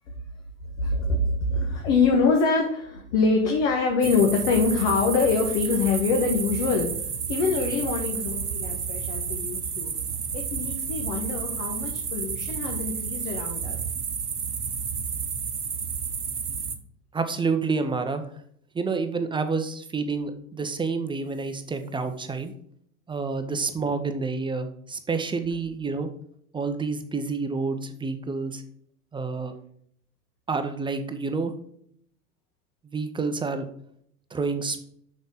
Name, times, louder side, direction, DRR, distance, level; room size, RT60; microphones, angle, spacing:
voice 1, 0.8-6.9 7.3-9.9 10.3-13.8, left 4 dB, 55° left, 2 dB, 1.6 m, -24 dB
sound 1, 4.0-16.8, right 6 dB, 85° right, 0.9 m, -31 dB
voice 2, 17.1-18.3 18.7-22.5 23.1-26.1 26.5-28.6 29.1-29.5 30.5-31.5 32.8-33.7 34.3-34.8, right 4 dB, 10° right, 8 dB, 0.8 m, -28 dB
6.3 x 6.3 x 5.1 m, 0.67 s
figure-of-eight pair, 80°, 44 cm